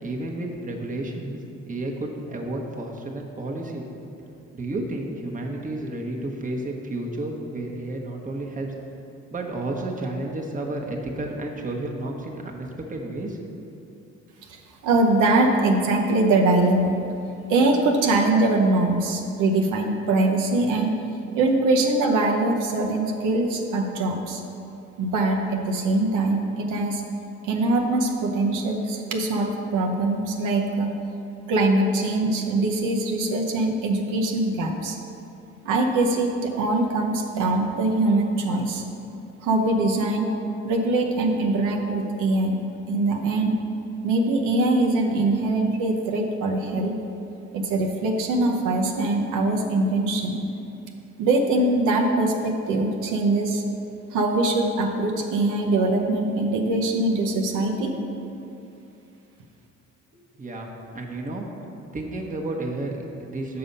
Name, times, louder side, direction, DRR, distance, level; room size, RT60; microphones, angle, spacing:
voice 1, 0.0-3.8 4.5-8.7 9.3-13.7 60.4-61.4 61.9-63.6, right 2 dB, 25° right, 0 dB, 1.1 m, -31 dB
voice 2, 14.8-17.0 17.5-20.9 21.3-24.4 25.0-27.0 27.4-31.0 31.5-35.0 35.6-38.8 39.4-40.3 40.6-42.6 42.9-43.5 44.0-46.9 47.5-50.4 51.2-53.6 54.1-57.9, right 2 dB, 90° right, 1 dB, 0.9 m, -22 dB
6.8 x 5.6 x 5.3 m, 2.8 s
cardioid pair, 90°, 30 cm